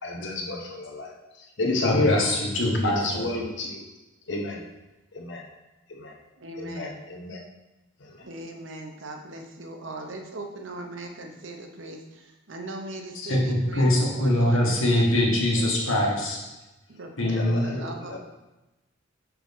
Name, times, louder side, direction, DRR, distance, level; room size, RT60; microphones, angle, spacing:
voice 1, 0.0-2.3 3.0-3.8 4.3-4.7 5.1-5.5 5.9-6.1 6.6-7.4 8.0-8.2 15.3-15.4 17.3-17.7 18.0-18.2, left 2 dB, 65° left, 2 dB, 1.0 m, -30 dB
voice 2, 1.8-3.3 13.1-16.4 17.2-17.8, left 1 dB, 90° left, -2 dB, 1.8 m, -23 dB
voice 3, 6.4-7.0 8.2-13.9 14.1-16.1 16.9-18.2, right 2 dB, 70° right, 3 dB, 0.9 m, -39 dB
6.3 x 5.9 x 3.6 m, 1.0 s
head